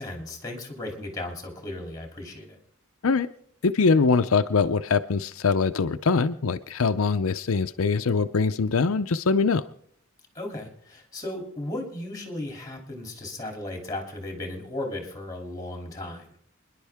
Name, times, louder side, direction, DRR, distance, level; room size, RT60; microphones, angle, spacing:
voice 1, 0.0-2.6 10.3-16.3, left 1 dB, 15° left, 2 dB, 3.0 m, -35 dB
voice 2, 3.6-9.6, left 4 dB, 85° left, 9 dB, 0.6 m, -23 dB
27.0 x 11.0 x 3.6 m, 0.66 s
head